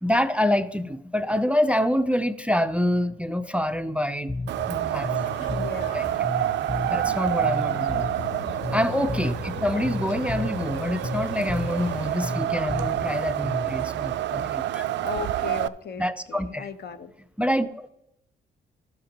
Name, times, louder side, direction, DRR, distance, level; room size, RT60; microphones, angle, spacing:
voice 1, 0.0-5.1 5.4-5.5 5.9-6.1 6.9-8.1 8.7-14.8 16.0-16.7 17.4-17.9, left 1 dB, 5° right, 13 dB, 0.4 m, -26 dB
Bass guitar, 4.3-13.9, left 2 dB, 25° left, 0.9 m, -34 dB
Wind, 4.5-15.7, right 12 dB, 70° right, 0.4 m, -28 dB
sound 1, 4.9-12.2, left 13 dB, 80° left, 0.4 m, -42 dB
voice 2, 5.5-6.3 7.1-7.2 9.6-9.9 14.9-17.1, left 6 dB, 60° left, 11 dB, 0.8 m, -37 dB
12.0 x 7.6 x 2.9 m, 0.81 s
cardioid pair, 80°, 19 cm